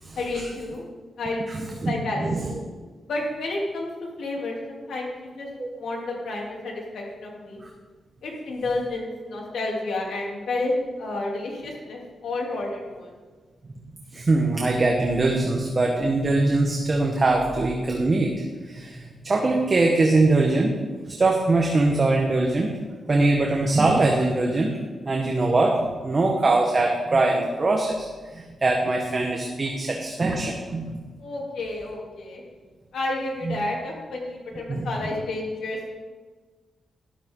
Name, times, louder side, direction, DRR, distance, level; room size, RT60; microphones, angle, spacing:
voice 1, 0.2-0.8 1.2-2.4 3.1-3.9 4.2-5.5 5.8-7.6 8.2-13.1 31.2-32.4 32.9-35.9, left 2 dB, 85° left, -2 dB, 3.0 m, -30 dB
voice 2, 1.5-2.5 5.6-5.7 7.6-7.7 14.1-20.8 21.1-22.7 23.1-24.7 25.0-28.1 28.3-31.0 33.4-33.6 34.7-34.9, right 2 dB, 25° right, 0 dB, 1.1 m, -22 dB
13.0 x 12.0 x 3.8 m, 1.4 s
wide cardioid pair, 175°, 0 cm